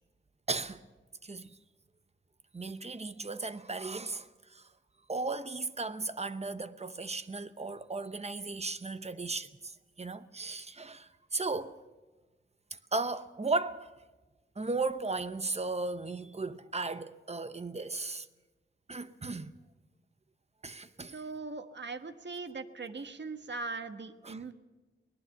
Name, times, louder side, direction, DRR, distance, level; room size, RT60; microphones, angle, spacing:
voice 1, 0.5-0.8 1.2-1.5 2.5-4.7 5.1-11.8 12.7-13.9 14.6-18.3 18.9-19.5 20.6-21.2 24.2-24.4, right 3 dB, 30° right, 0.9 m, -36 dB
voice 2, 21.1-24.5, right 3 dB, 60° right, 1.4 m, -40 dB
24.0 x 19.0 x 7.2 m
wide cardioid pair, 120°, 21 cm